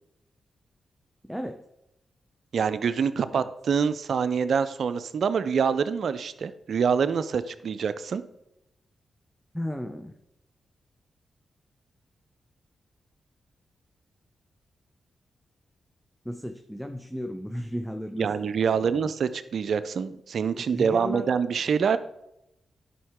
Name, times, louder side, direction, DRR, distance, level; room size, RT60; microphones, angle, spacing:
voice 1, 1.2-1.7 3.3-3.4 9.5-10.1 16.2-18.5 18.8-19.1 20.5-21.3, equal, ahead, 6 dB, 0.7 m, -35 dB
voice 2, 2.5-8.2 18.2-22.0, right 6 dB, 70° right, 14 dB, 0.5 m, -26 dB
11.0 x 5.5 x 3.6 m, 0.86 s
supercardioid pair, 40°, 0 cm